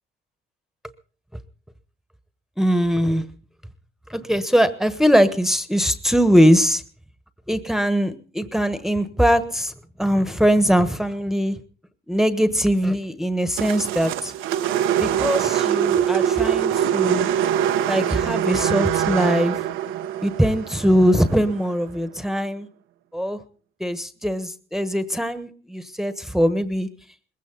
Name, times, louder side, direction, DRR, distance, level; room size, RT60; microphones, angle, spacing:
voice 1, 2.6-3.2 4.1-6.8 7.5-9.7 10.0-11.6 12.1-14.3 15.0-17.3 17.9-19.5 20.2-22.7 23.1-23.4 23.8-26.9, equal, ahead, 10 dB, 1.3 m, -21 dB
sound 1, 13.6-21.8, right 10 dB, 90° right, 0.9 m, -23 dB
20.5 x 16.0 x 4.0 m, 0.40 s
cardioid pair, 90°, 20 cm